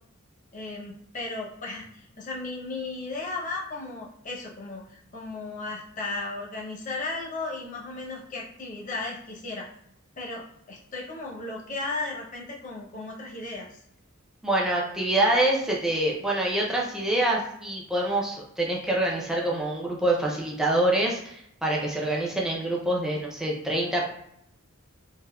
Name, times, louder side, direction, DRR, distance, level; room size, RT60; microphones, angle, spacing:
voice 1, 0.5-9.7 10.2-13.8, left 3 dB, 40° left, -3 dB, 0.6 m, -35 dB
voice 2, 14.4-24.1, right 1 dB, 5° right, -3 dB, 0.4 m, -26 dB
3.5 x 2.5 x 2.2 m, 0.75 s
head